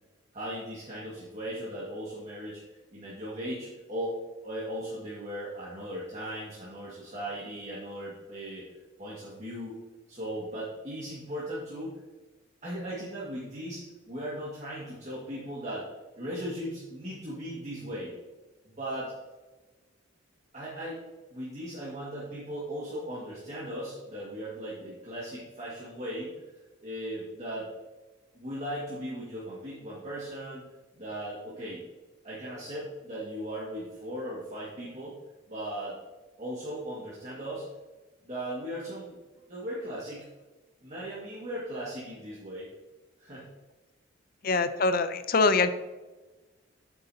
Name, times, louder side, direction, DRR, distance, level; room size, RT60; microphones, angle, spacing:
voice 1, 0.3-2.6 2.9-4.2 4.4-8.6 9.0-9.7 10.1-11.9 12.6-15.9 16.1-18.1 18.6-19.1 20.5-21.0 21.3-26.3 26.8-27.7 28.4-30.6 30.9-31.8 32.2-35.2 35.5-36.0 36.4-37.7 38.2-39.1 39.5-40.3 40.8-42.7 43.2-43.5, equal, 35° right, -7 dB, 1.8 m, -37 dB
voice 2, 44.4-45.7, left 3 dB, 45° left, 11 dB, 0.5 m, -24 dB
8.9 x 7.9 x 2.8 m, 1.2 s
head